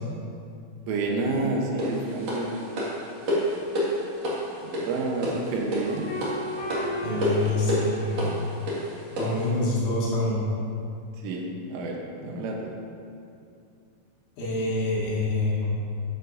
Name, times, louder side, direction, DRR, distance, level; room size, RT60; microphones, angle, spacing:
voice 1, 0.8-2.5 4.6-6.1 11.2-11.4 11.7-12.0 12.2-12.6, right 3 dB, 80° right, 0 dB, 3.4 m, -29 dB
sound 1, 1.8-9.5, equal, 50° right, 2.0 m, -29 dB
sound 2, 5.8-8.7, left 1 dB, 85° left, 5.1 m, -35 dB
voice 2, 7.0-8.4 9.2-10.5 12.2-12.3 14.4-15.7, left 2 dB, 70° left, -7 dB, 4.1 m, -26 dB
12.0 x 9.9 x 2.7 m, 2.5 s
omnidirectional pair, 5.9 m